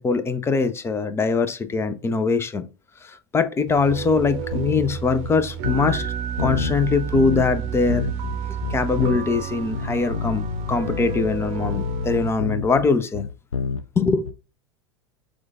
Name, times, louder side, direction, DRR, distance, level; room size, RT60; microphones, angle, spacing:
voice 1, 0.0-2.6 3.0-6.1 6.4-8.0 8.7-13.2 14.0-14.3, left 4 dB, 15° left, 0.6 m, -22 dB
sound 1, 3.7-12.3, right 8 dB, 45° right, 0.8 m, -31 dB
sound 2, 4.5-5.0 5.2-5.3 5.6-6.1 6.4-7.6 7.9-9.4 9.7-14.3, left 6 dB, 80° left, 0.4 m, -28 dB
6.1 x 2.4 x 3.6 m
figure-of-eight pair, 80°, 16 cm